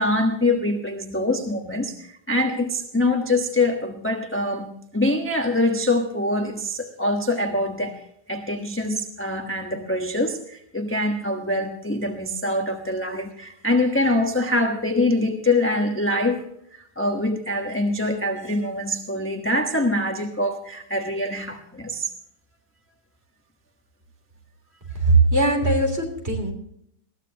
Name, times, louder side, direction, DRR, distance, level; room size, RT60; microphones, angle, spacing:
voice 1, 0.0-16.4 16.7-22.1, left 1 dB, 10° left, 3 dB, 0.7 m, -24 dB
voice 2, 24.9-26.5, right 3 dB, 30° right, 3 dB, 3.5 m, -20 dB
21.0 x 15.0 x 2.9 m, 0.70 s
omnidirectional pair, 2.3 m